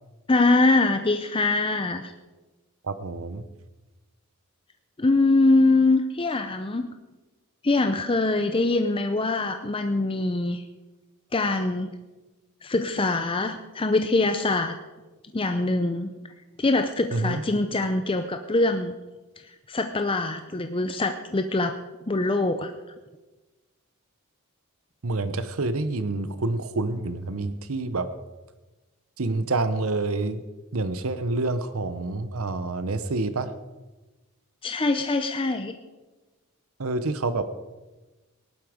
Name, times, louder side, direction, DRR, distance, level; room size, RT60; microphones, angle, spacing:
voice 1, 0.3-2.1 5.0-6.9 7.6-10.6 11.3-11.9 12.6-14.7 15.3-16.1 16.6-18.9 19.4-21.8 22.1-22.7 34.6-35.8, left 2 dB, 25° left, 7 dB, 0.6 m, -23 dB
voice 2, 2.8-3.4 17.1-17.4 25.0-28.1 29.2-30.4 30.7-33.5 36.8-37.4, right 2 dB, 65° right, 11 dB, 0.9 m, -27 dB
18.5 x 11.5 x 5.0 m, 1.2 s
head